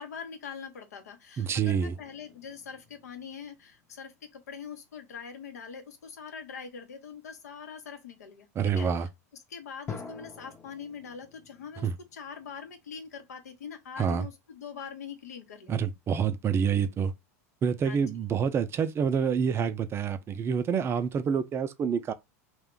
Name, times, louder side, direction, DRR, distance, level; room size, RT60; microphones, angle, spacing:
voice 1, 0.0-8.5 8.8-9.1 9.5-16.0 17.8-18.1, left 6 dB, 85° left, 0.7 m, -43 dB
voice 2, 1.4-1.9 8.6-9.1 11.8-11.9 14.0-14.3 15.7-17.1 17.6-22.1, right 7 dB, 30° right, 0.4 m, -27 dB
sound 1, 1.8-4.7 5.3-5.6 9.9-14.2, left 5 dB, 20° left, 0.6 m, -48 dB
2.5 x 2.2 x 3.7 m
hypercardioid pair, 95°, 8 cm